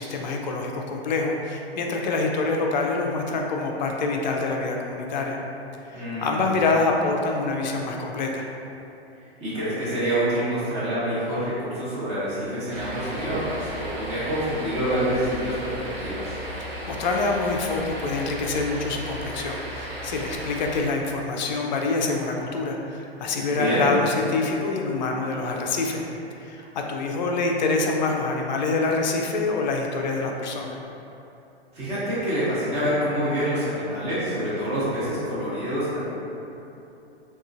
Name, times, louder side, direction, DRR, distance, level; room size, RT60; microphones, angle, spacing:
voice 1, 0.0-5.4 5.9-8.5 16.6-26.0 26.4-30.8, left 3 dB, 45° left, 1 dB, 0.4 m, -26 dB
voice 2, 5.9-6.4 9.4-16.4 23.5-23.8 31.7-36.1, equal, 20° right, -11 dB, 1.1 m, -27 dB
sound 1, 12.7-20.8, equal, 70° right, 0.9 m, -35 dB
3.6 x 2.3 x 2.5 m, 2.8 s
figure-of-eight pair, 115°, 32 cm